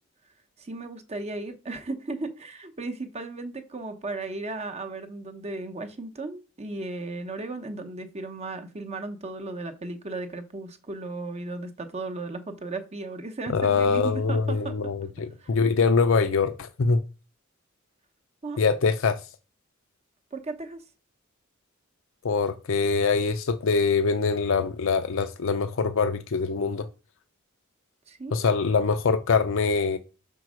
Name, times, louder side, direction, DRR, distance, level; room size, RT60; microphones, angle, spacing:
voice 1, 0.6-14.9 15.4-15.5 18.4-18.6 20.3-20.8 28.1-28.4, right 2 dB, 30° right, 0.8 m, -35 dB
voice 2, 13.5-17.0 18.6-19.2 22.2-26.8 28.3-30.0, left 4 dB, 65° left, 0.5 m, -24 dB
5.2 x 4.6 x 6.2 m
head